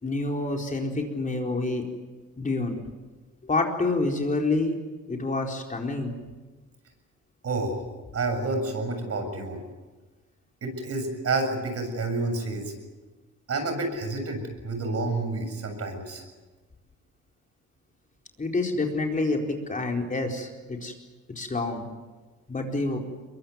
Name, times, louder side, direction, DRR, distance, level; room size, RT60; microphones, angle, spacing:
voice 1, 0.0-1.8 2.4-2.8 3.4-4.8 5.1-6.1 18.4-20.9 21.3-21.9 22.5-23.0, left 2 dB, 25° left, 1 dB, 4.4 m, -27 dB
voice 2, 7.4-7.8 8.1-9.6 10.6-12.7 13.5-16.2, right 2 dB, 50° right, 6 dB, 7.2 m, -29 dB
23.0 x 22.5 x 9.5 m, 1.3 s
cardioid pair, 90°, 30 cm